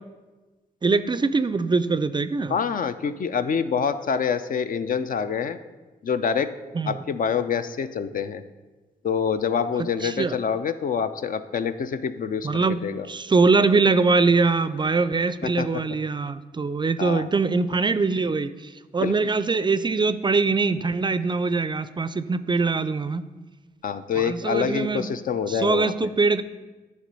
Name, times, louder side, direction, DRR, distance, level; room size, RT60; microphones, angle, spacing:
voice 1, 0.8-2.6 6.7-7.0 9.8-10.4 12.4-23.3 24.1-25.1 25.5-26.4, right 4 dB, 25° right, 14 dB, 0.4 m, -23 dB
voice 2, 2.5-5.6 6.0-6.5 6.9-8.4 9.0-13.1 15.4-15.7 17.0-17.3 19.0-19.1 23.8-25.9, left 6 dB, 55° left, 11 dB, 0.5 m, -26 dB
9.7 x 3.3 x 5.3 m, 1.2 s
supercardioid pair, 45°, 17 cm